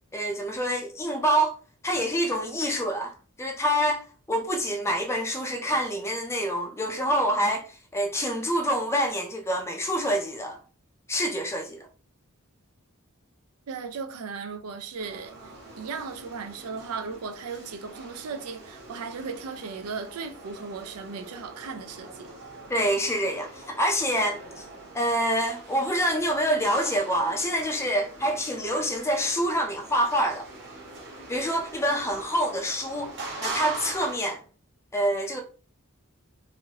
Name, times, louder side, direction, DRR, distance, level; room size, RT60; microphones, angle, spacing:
voice 1, 0.1-1.6 1.8-3.1 3.4-4.0 4.3-10.6 11.1-11.9 22.7-24.6 24.9-30.5 31.3-34.4 34.9-35.4, equal, 10° left, 0.4 m, -26 dB
voice 2, 13.7-15.3 15.8-22.3, right 5 dB, 85° right, 0.5 m, -36 dB
sound 1, 15.0-34.2, right 3 dB, 50° right, 1.0 m, -42 dB
3.0 x 2.6 x 2.8 m
head